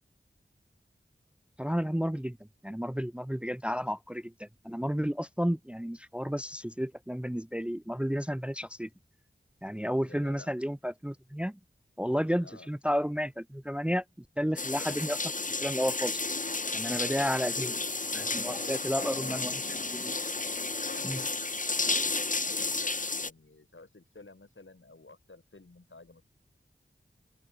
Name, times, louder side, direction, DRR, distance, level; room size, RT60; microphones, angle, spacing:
voice 1, 1.6-2.4 2.6-8.9 9.6-11.6 12.0-14.0 14.4-16.2 16.7-17.8 18.1-19.5 19.9-20.1 21.0-21.2, equal, 5° right, 0.7 m, -32 dB
voice 2, 10.1-10.5 12.4-12.7 16.9-17.2 18.5-19.3 20.9-26.2, left 3 dB, 70° left, 5.5 m, -51 dB
sound 1, 14.6-23.3, left 3 dB, 40° left, 0.9 m, -32 dB
open air
wide cardioid pair, 45°, 21 cm